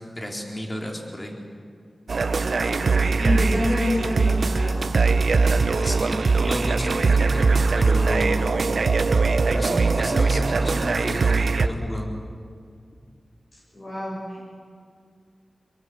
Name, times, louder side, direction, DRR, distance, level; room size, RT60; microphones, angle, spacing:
voice 1, 0.2-1.3 5.8-6.1 6.4-8.5 9.5-12.1, equal, 25° left, 0 dB, 4.1 m, -31 dB
sound 1, 2.1-11.7, right 4 dB, 70° right, 1.1 m, -21 dB
voice 2, 2.4-4.8 8.2-8.5 13.7-14.4, left 1 dB, 55° left, -6 dB, 7.3 m, -28 dB
25.0 x 22.0 x 8.1 m, 2.2 s
wide cardioid pair, 80°, 0 cm